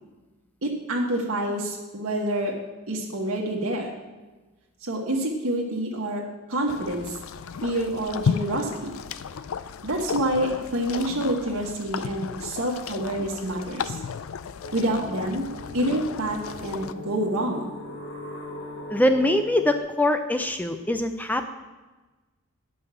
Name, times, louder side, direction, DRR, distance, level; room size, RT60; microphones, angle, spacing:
voice 1, 0.6-2.6 2.9-3.9 4.9-6.2 6.5-7.2 7.6-9.0 9.8-14.0 14.7-15.5 15.7-17.6, right 1 dB, 80° right, -1 dB, 1.4 m, -27 dB
sound 1, 6.7-16.9, left 6 dB, 75° left, 0.4 m, -34 dB
sound 2, 14.6-19.8, left 1 dB, 55° left, 2.8 m, -39 dB
voice 2, 18.9-21.5, left 1 dB, 10° left, 7 dB, 0.5 m, -23 dB
9.7 x 5.5 x 6.9 m, 1.2 s
head